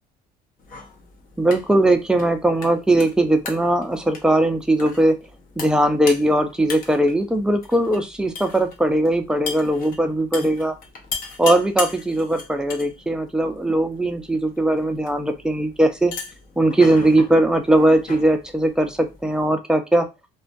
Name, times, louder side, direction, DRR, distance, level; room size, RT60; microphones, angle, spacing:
sound 1, 0.6-19.5, left 4 dB, 55° left, 0.7 m, -38 dB
voice 1, 1.4-5.2 5.6-10.7 11.4-16.1 16.6-20.1, right 1 dB, 5° right, 6 dB, 0.4 m, -19 dB
2.2 x 2.2 x 2.5 m, 0.25 s
cardioid pair, 110°, 17 cm